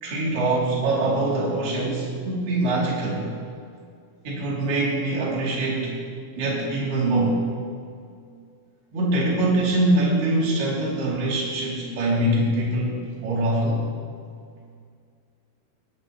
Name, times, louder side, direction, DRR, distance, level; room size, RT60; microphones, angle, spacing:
voice 1, 0.0-3.3 4.3-6.0 6.4-7.4 8.9-13.8, right 1 dB, 65° right, -6 dB, 5.3 m, -23 dB
20.5 x 19.0 x 3.2 m, 2.2 s
omnidirectional pair, 4.8 m